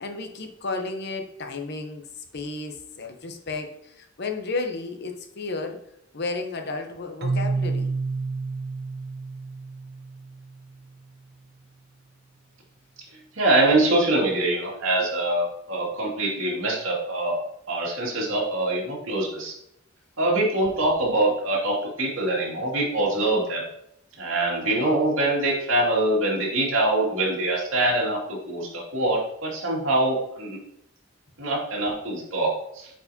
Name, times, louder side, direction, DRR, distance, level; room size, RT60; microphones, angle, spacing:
voice 1, 0.0-2.0 2.3-5.8 6.1-7.9, left 3 dB, 55° left, 5 dB, 0.8 m, -32 dB
Keyboard (musical), 7.2-10.9, right 3 dB, 55° right, 0.6 m, -30 dB
voice 2, 13.3-17.4 17.7-19.5 20.2-23.6 24.2-30.6 31.4-32.9, right 2 dB, 75° right, -3 dB, 2.3 m, -24 dB
8.0 x 4.8 x 2.8 m, 0.75 s
head